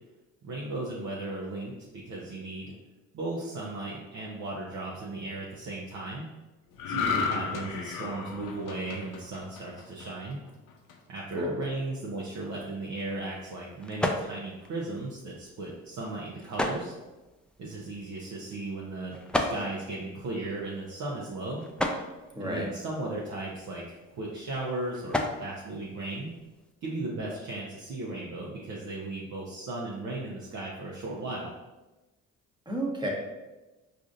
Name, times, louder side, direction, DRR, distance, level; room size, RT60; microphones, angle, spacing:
voice 1, 0.4-2.7 3.1-6.3 6.9-10.4 11.1-16.9 17.6-21.6 22.4-26.3 26.8-31.5, right 2 dB, 55° right, -4 dB, 0.8 m, -36 dB
sound 1, 6.8-10.3 10.7-10.9, left 5 dB, 65° left, 0.6 m, -33 dB
sound 2, 12.4-26.7, left 1 dB, 5° left, 0.4 m, -37 dB
voice 2, 22.3-22.7 32.7-33.1, equal, 15° right, -1 dB, 1.1 m, -31 dB
4.8 x 2.5 x 2.5 m, 1.1 s
hypercardioid pair, 55°, 35 cm